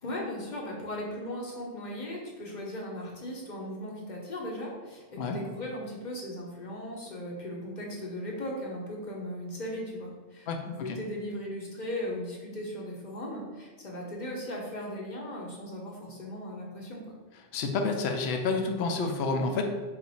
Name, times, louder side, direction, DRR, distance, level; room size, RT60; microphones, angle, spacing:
voice 1, 0.0-17.1, left 1 dB, 50° left, -2 dB, 0.8 m, -37 dB
voice 2, 10.5-11.0 17.5-19.6, left 4 dB, 80° left, 4 dB, 0.8 m, -29 dB
4.2 x 2.4 x 4.0 m, 1.4 s
omnidirectional pair, 1.1 m